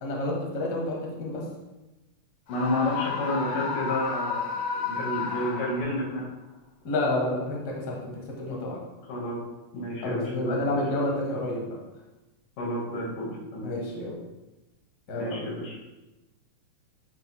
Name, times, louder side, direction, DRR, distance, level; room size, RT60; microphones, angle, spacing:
voice 1, 0.0-1.4 6.8-8.8 10.0-11.8 13.6-14.1 15.1-15.4, left 1 dB, 45° left, -2 dB, 1.4 m, -29 dB
voice 2, 2.5-4.6 4.8-6.3 9.1-9.4 9.7-10.8 12.6-13.7 15.1-15.7, left 1 dB, 85° left, -4 dB, 3.4 m, -30 dB
Screaming, 2.5-6.2, left 5 dB, 65° left, 1.5 m, -32 dB
12.0 x 5.1 x 2.2 m, 1.0 s
omnidirectional pair, 3.5 m